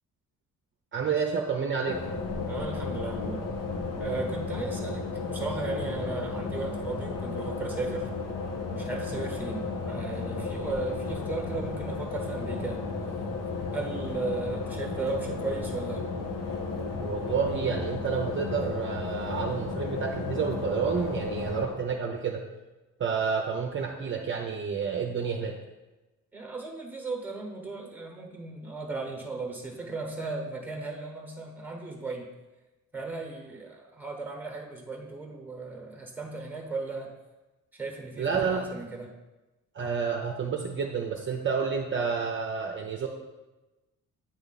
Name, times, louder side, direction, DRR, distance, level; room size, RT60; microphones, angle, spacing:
voice 1, 0.9-2.0 17.0-22.4 23.0-25.5 38.2-38.7 39.7-43.1, right 6 dB, 40° right, 1 dB, 0.6 m, -29 dB
sound 1, 1.9-21.7, left 4 dB, 80° left, 1.0 m, -33 dB
voice 2, 2.5-3.4 4.0-8.1 8.7-12.8 13.7-16.0 26.3-32.3 32.9-37.1 37.7-39.1, right 3 dB, 5° right, 2 dB, 1.1 m, -36 dB
8.7 x 3.5 x 4.0 m, 1.1 s
cardioid pair, 110°, 32 cm